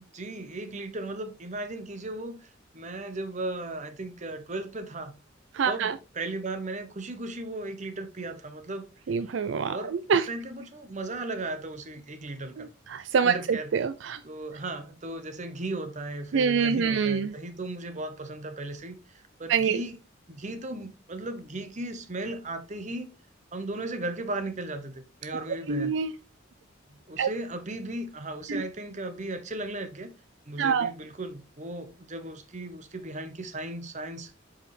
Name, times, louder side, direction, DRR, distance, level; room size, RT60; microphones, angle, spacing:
voice 1, 0.1-5.1 5.7-9.2 9.7-12.7 13.2-13.7 14.2-20.0 20.3-23.1 23.5-26.0 27.1-30.1 30.5-34.3, right 2 dB, 35° right, 0.9 m, -36 dB
voice 2, 5.5-5.9 9.1-10.3 12.6-14.2 16.3-17.3 19.5-19.8 25.7-26.1 27.2-27.3 28.5-28.6 30.6-30.9, right 6 dB, 65° right, 0.4 m, -26 dB
8.2 x 4.9 x 3.2 m
head